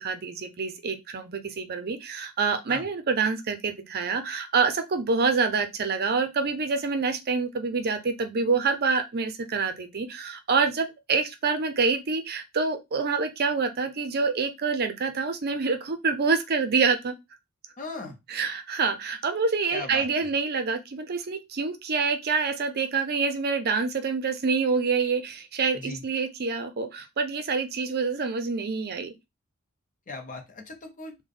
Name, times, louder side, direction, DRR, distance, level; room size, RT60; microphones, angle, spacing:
voice 1, 0.0-17.1 18.3-29.1, right 4 dB, 45° right, 8 dB, 0.5 m, -27 dB
voice 2, 17.8-18.2 19.7-20.3 25.7-26.0 30.1-31.1, left 3 dB, 40° left, 5 dB, 0.8 m, -38 dB
3.5 x 2.2 x 3.7 m, 0.21 s
head